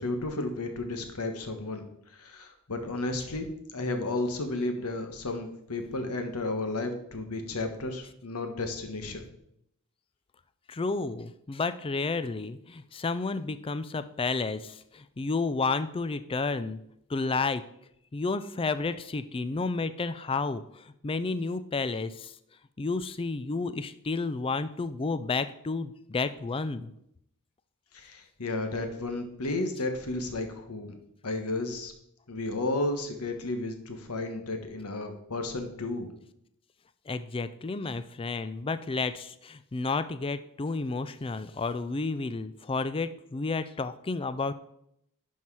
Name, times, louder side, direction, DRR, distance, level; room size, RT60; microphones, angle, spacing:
voice 1, 0.0-1.9 2.1-9.3 27.9-31.0 31.2-31.9 32.3-36.1, left 2 dB, 80° left, 6 dB, 1.3 m, -33 dB
voice 2, 10.7-16.8 17.1-17.6 18.1-22.3 22.8-26.9 37.1-44.5, left 3 dB, 25° left, 12 dB, 0.4 m, -31 dB
11.5 x 4.6 x 4.7 m, 0.75 s
head